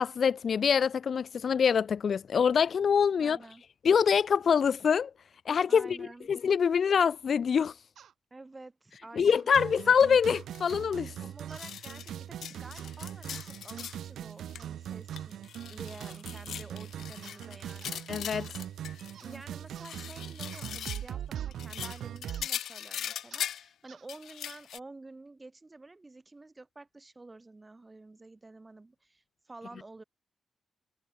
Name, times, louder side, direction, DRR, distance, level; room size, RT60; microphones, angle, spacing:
voice 1, 0.0-3.4 3.8-5.1 5.5-6.0 6.3-7.7 9.1-11.1 18.1-18.5, left 7 dB, 50° left, 0.5 m, -25 dB
voice 2, 3.2-3.6 5.7-6.3 8.3-9.7 11.2-18.6 19.2-30.0, right 2 dB, 15° right, 2.6 m, -50 dB
sound 1, 8.0-8.1 9.2-9.5 10.2-10.5 11.5-11.7 12.7-13.0 13.3-14.0 14.6-14.8 15.1-15.3 16.0-16.3 17.2-17.5 17.8-18.0 18.3-18.5 19.1-19.4 19.8-20.0 20.5-20.7 21.4-21.5 21.8-22.0 22.3-22.5 23.3-23.5 23.9-24.1, right 9 dB, 65° right, 2.1 m, -55 dB
sound 2, 9.5-22.5, right 10 dB, 80° right, 2.0 m, -41 dB
sound 3, 10.5-10.7 11.1-11.2 11.5-12.1 12.4-14.0 14.3-14.6 14.9-19.4 19.7-21.1 21.5-23.7 24.1-24.8, left 10 dB, 70° left, 0.9 m, -40 dB
cardioid pair, 140°, 0 cm